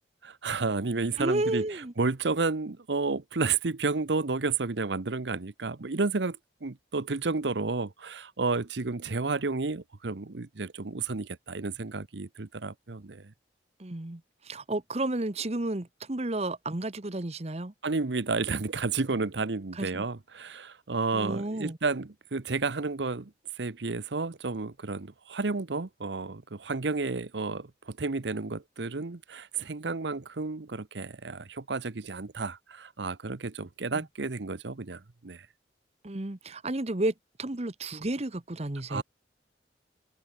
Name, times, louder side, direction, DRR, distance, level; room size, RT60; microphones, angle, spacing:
voice 1, 0.2-13.3 17.8-35.5 38.9-39.0, right 3 dB, 70° right, 0.9 m, -31 dB
voice 2, 1.2-1.9 13.8-17.7 19.8-20.0 21.1-21.8 33.9-34.0 36.0-39.0, right 2 dB, 35° right, 1.1 m, -32 dB
head